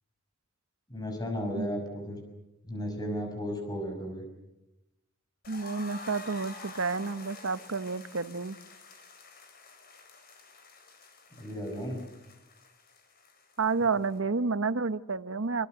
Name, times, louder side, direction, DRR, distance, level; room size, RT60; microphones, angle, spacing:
voice 1, 0.9-2.2 2.6-4.2 11.4-12.1, equal, 20° left, 4 dB, 6.0 m, -34 dB
sound 1, 5.4-14.2, left 3 dB, 45° left, 4.8 m, -49 dB
voice 2, 5.5-8.6 13.6-15.7, right 4 dB, 65° right, 14 dB, 1.0 m, -30 dB
26.5 x 26.0 x 8.0 m, 0.94 s
head